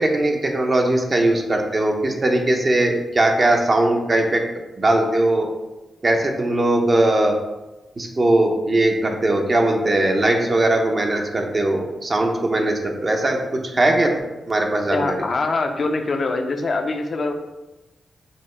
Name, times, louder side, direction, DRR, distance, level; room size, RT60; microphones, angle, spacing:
voice 1, 0.0-4.4 4.8-5.5 6.0-7.3 8.0-14.1 14.5-15.2, right 1 dB, 40° right, 2 dB, 0.6 m, -19 dB
voice 2, 14.9-17.3, left 3 dB, 55° left, 5 dB, 0.5 m, -24 dB
5.2 x 2.0 x 3.1 m, 1.1 s
cardioid pair, 65°, 0 cm